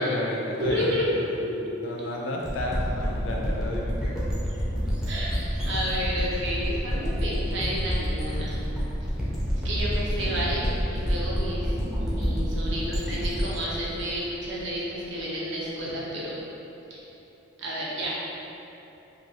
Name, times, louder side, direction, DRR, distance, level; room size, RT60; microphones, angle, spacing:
voice 1, 0.0-1.4 1.8-4.2, left 1 dB, 65° left, -1 dB, 0.4 m, -31 dB
voice 2, 0.6-1.7 5.0-5.3 5.6-8.6 9.6-11.7 12.0-16.4 17.6-18.1, equal, 65° right, -6 dB, 0.6 m, -30 dB
sound 1, 2.4-15.0, equal, 5° right, 0.4 m, -28 dB
3.0 x 2.3 x 2.7 m, 3.0 s
head